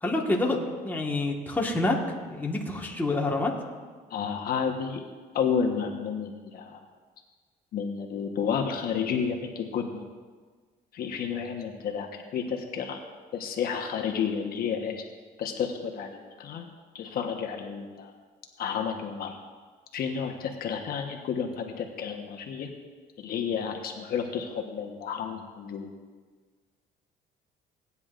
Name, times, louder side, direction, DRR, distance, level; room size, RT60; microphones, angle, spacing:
voice 1, 0.0-2.0 2.3-3.5, left 2 dB, 10° left, -1 dB, 1.5 m, -27 dB
voice 2, 4.1-5.0 5.3-6.8 7.7-10.1 10.9-13.0 13.3-15.0 15.4-16.7 16.9-18.1 18.6-19.4 19.9-22.7 23.2-25.9, left 7 dB, 60° left, 2 dB, 1.2 m, -31 dB
18.0 x 9.6 x 2.5 m, 1.5 s
cardioid pair, 110°, 17 cm